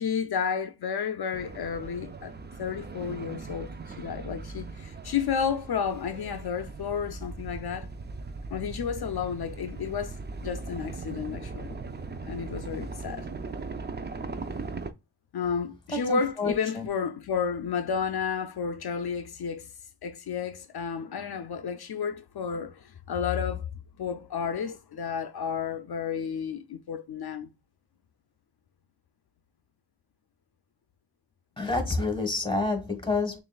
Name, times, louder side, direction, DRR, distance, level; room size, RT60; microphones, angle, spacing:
voice 1, 0.0-2.3 2.6-7.9 8.5-11.8 12.3-13.3 15.3-19.7 20.0-23.7 24.0-27.5, left 6 dB, 75° left, 0.5 m, -31 dB
sound 1, 1.3-14.9, right 3 dB, 25° right, 0.4 m, -39 dB
voice 2, 15.9-16.9 31.6-33.4, left 3 dB, 15° left, 1.4 m, -28 dB
6.3 x 2.5 x 2.3 m
wide cardioid pair, 65°, 39 cm